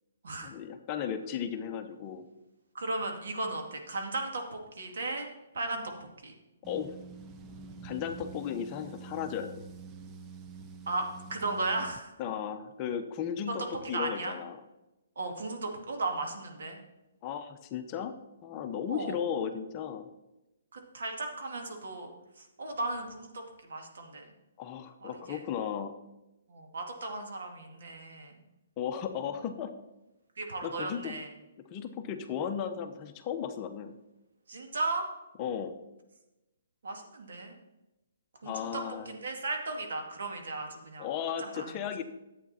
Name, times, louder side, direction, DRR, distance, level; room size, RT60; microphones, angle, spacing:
voice 1, 0.4-2.2 6.7-7.0 7.8-9.6 12.2-14.6 17.2-18.1 18.4-20.1 24.6-26.0 28.8-29.7 30.6-31.1 31.7-33.9 35.4-35.7 38.4-39.1 41.0-42.0, left 8 dB, 25° left, 6 dB, 0.8 m, -35 dB
voice 2, 2.7-5.3 5.5-6.3 10.9-12.1 13.5-13.6 13.9-14.4 15.2-16.8 18.9-19.2 20.7-22.1 22.4-24.3 25.0-25.4 26.5-28.4 30.4-31.3 34.5-35.1 36.8-37.5 38.4-41.1 41.4-41.7, right 2 dB, 75° right, 3 dB, 2.2 m, -36 dB
sound 1, 6.6-12.0, right 4 dB, 20° right, 0.6 m, -47 dB
10.5 x 8.3 x 4.3 m, 0.97 s
hypercardioid pair, 155°, 0 cm